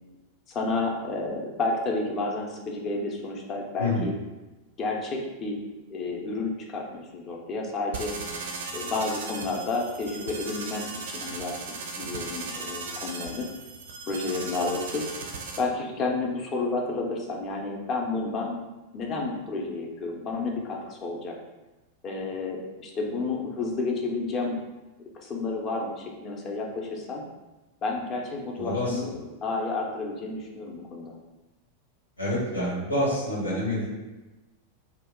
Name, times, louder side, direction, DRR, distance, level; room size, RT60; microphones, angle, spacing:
voice 1, 0.5-4.1 4.8-5.6 5.9-8.1 8.7-11.5 11.8-13.5 14.1-15.0 15.6-18.6 18.9-21.4 22.0-24.6 25.1-27.2 27.8-29.1 29.4-31.1, left 3 dB, 30° left, 0 dB, 0.6 m, -31 dB
voice 2, 3.8-4.1 28.6-29.0 32.2-33.9, left 1 dB, 90° left, -6 dB, 1.1 m, -27 dB
sound 1, 7.9-15.6, right 4 dB, 60° right, 0.4 m, -37 dB
2.8 x 2.3 x 3.6 m, 1.1 s
figure-of-eight pair, 90°, 0 cm